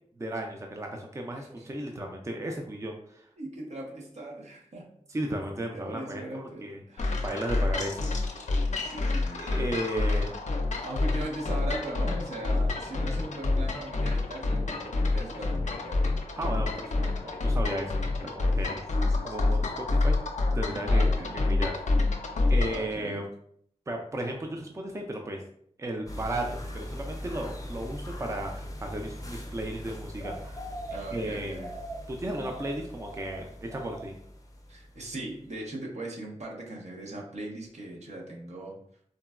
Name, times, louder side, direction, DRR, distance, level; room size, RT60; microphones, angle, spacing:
voice 1, 0.2-3.3 5.1-6.8 7.2-8.1 9.4-10.3 16.4-17.9 18.3-18.8 19.2-20.2 20.5-21.1 21.3-21.7 22.5-23.3 23.9-25.4 25.8-30.6 31.1-31.6 32.1-34.1, right 1 dB, 25° right, 2 dB, 0.4 m, -34 dB
voice 2, 1.4-1.7 3.4-4.9 5.7-7.1 8.8-9.6 9.9-10.0 10.8-16.1 18.5-19.7 20.9-21.4 22.7-23.2 30.9-31.7 34.7-38.7, right 1 dB, 70° right, -2 dB, 0.8 m, -39 dB
sound 1, 7.0-22.9, left 2 dB, 80° left, 0.4 m, -27 dB
sound 2, 26.1-35.3 35.6-35.7, equal, 30° left, 0.5 m, -40 dB
3.8 x 2.1 x 2.3 m, 0.64 s
wide cardioid pair, 60°, 12 cm